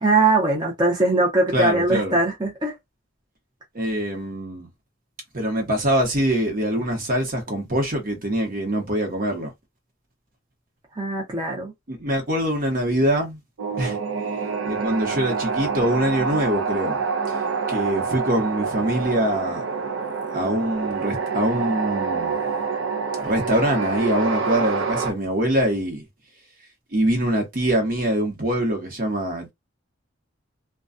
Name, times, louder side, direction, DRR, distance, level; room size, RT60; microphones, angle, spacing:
voice 1, 0.0-2.7 11.0-11.7, right 2 dB, 25° right, 0.7 m, -21 dB
voice 2, 1.5-2.2 3.7-4.7 5.3-9.5 11.9-13.4 13.8-14.0 14.6-17.0 17.7-19.6 20.3-22.3 23.2-26.0 26.9-29.5, right 1 dB, 45° right, 0.9 m, -24 dB
sound 1, 13.6-25.1, right 5 dB, 70° right, 0.5 m, -27 dB
2.2 x 2.2 x 2.5 m
head